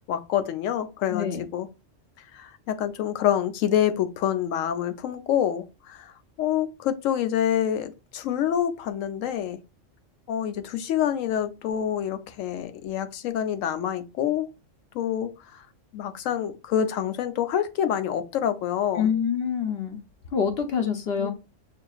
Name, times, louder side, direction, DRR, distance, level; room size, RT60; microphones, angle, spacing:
voice 1, 0.1-1.7 2.3-6.1 6.4-9.6 10.3-14.5 14.9-15.6 15.9-19.1 21.2-21.3, left 10 dB, 90° left, 1.0 m, -27 dB
voice 2, 1.1-1.4 19.0-20.0 20.3-21.3, left 7 dB, 60° left, 0.8 m, -26 dB
5.6 x 2.5 x 2.3 m
omnidirectional pair, 1.3 m